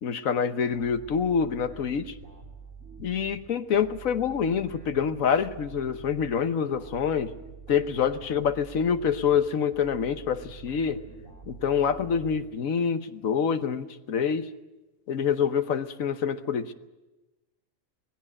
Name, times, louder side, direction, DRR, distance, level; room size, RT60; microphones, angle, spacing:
voice 1, 0.0-2.1 3.0-7.3 7.7-11.0 11.5-14.5 15.1-16.7, left 7 dB, 80° left, 10 dB, 1.4 m, -26 dB
sound 1, 0.7-12.9, right 5 dB, 60° right, 4.4 m, -47 dB
19.5 x 16.5 x 10.0 m, 1.1 s
omnidirectional pair, 1.4 m